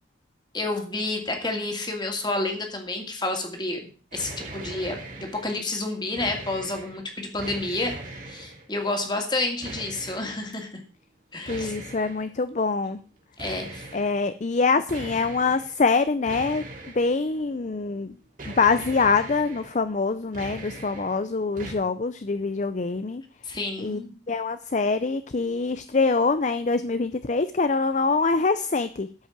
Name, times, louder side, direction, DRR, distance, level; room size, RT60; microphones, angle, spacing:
voice 1, 0.5-10.7 11.3-11.7 13.4-13.9 23.4-24.1, left 2 dB, 25° left, 3 dB, 2.4 m, -30 dB
sound 1, 4.1-5.6 5.9-7.0 7.4-8.6 9.6-10.5 11.4-12.3 13.4-14.2 14.9-15.7 16.3-17.4 18.4-19.8 20.1-21.2 21.5-21.7, right 2 dB, 45° right, 2.7 m, -40 dB
voice 2, 11.5-13.0 13.9-16.6 17.0-18.1 18.5-23.2 23.8-24.0 24.3-29.1, left 4 dB, 40° left, 12 dB, 0.5 m, -24 dB
13.0 x 5.6 x 7.3 m, 0.40 s
head